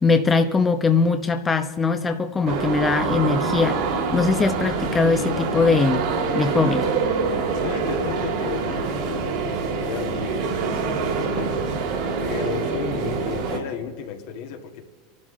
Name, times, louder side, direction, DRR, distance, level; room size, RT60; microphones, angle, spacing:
voice 1, 0.0-3.8 4.1-6.0 6.3-6.9, left 4 dB, 20° left, 6 dB, 0.9 m, -21 dB
sound 1, 2.5-13.6, right 4 dB, 65° right, 3.5 m, -25 dB
voice 2, 7.5-11.6 12.2-14.8, left 7 dB, 65° left, 4 dB, 1.8 m, -34 dB
27.5 x 12.0 x 3.8 m, 1.4 s
hypercardioid pair, 105°, 0 cm